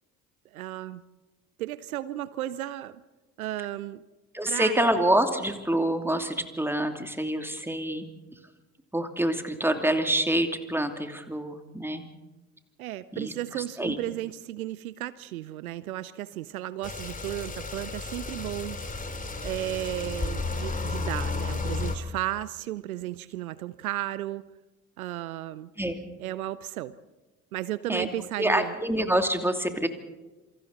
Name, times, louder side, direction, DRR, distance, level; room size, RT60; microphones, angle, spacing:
voice 1, 0.5-1.0 1.6-3.0 3.4-4.0 4.5-4.8 12.8-18.8 19.4-24.4 25.0-25.7 26.2-26.9 27.5-28.8, right 14 dB, 80° right, 18 dB, 0.7 m, -34 dB
voice 2, 4.3-8.1 8.9-12.1 13.1-14.0 25.8-26.0 27.9-28.1 28.4-29.9, right 1 dB, 5° right, 6 dB, 2.8 m, -26 dB
sound 1, 16.8-22.0, left 3 dB, 20° left, 2.9 m, -33 dB
27.0 x 26.0 x 4.1 m, 1.1 s
figure-of-eight pair, 55°, 43 cm